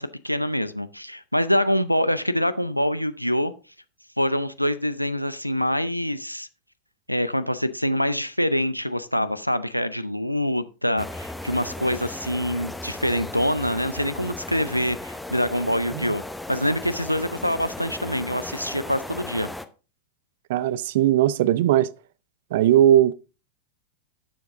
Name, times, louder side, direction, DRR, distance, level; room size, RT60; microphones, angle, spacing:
voice 1, 0.0-3.5 4.2-6.5 7.1-16.2 16.5-19.5, equal, 90° left, 0.6 m, -25 dB
sound 1, 11.0-19.7, left 1 dB, 5° left, 0.8 m, -36 dB
voice 2, 20.5-21.9 22.5-23.1, right 12 dB, 55° right, 0.5 m, -19 dB
12.0 x 7.2 x 3.6 m
figure-of-eight pair, 90°, 0 cm